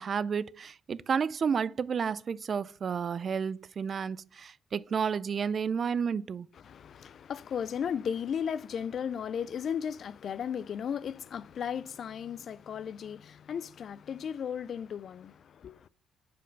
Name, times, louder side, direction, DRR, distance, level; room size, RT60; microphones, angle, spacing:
voice 1, 0.0-6.5, right 6 dB, 45° right, 0.3 m, -31 dB
voice 2, 6.6-15.9, left 8 dB, 60° left, 0.3 m, -35 dB
5.1 x 4.4 x 5.3 m
cardioid pair, 90°, 0 cm